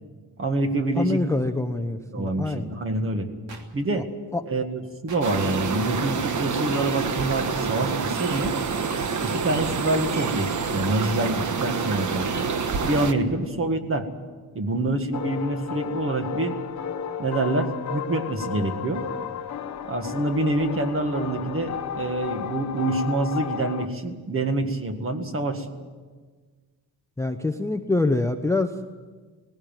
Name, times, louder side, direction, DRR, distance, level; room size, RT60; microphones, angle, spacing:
voice 1, 0.4-1.7 2.1-3.3 3.7-4.1 4.5-8.6 9.2-12.5 12.8-14.1 14.5-16.5 17.2-19.0 19.9-25.7, right 2 dB, 35° right, 6 dB, 1.9 m, -26 dB
voice 2, 1.0-2.7 4.3-4.4 27.2-28.9, left 2 dB, 10° left, 8 dB, 0.6 m, -25 dB
sound 1, 3.5-3.6 5.1-5.2 6.7-6.8 8.3-8.4, right 4 dB, 75° right, 3.1 m, -41 dB
sound 2, 5.2-13.1, right 5 dB, 50° right, 1.3 m, -27 dB
sound 3, 15.1-23.9, left 7 dB, 50° left, 1.1 m, -33 dB
18.5 x 17.0 x 9.1 m, 1.4 s
wide cardioid pair, 155°, 38 cm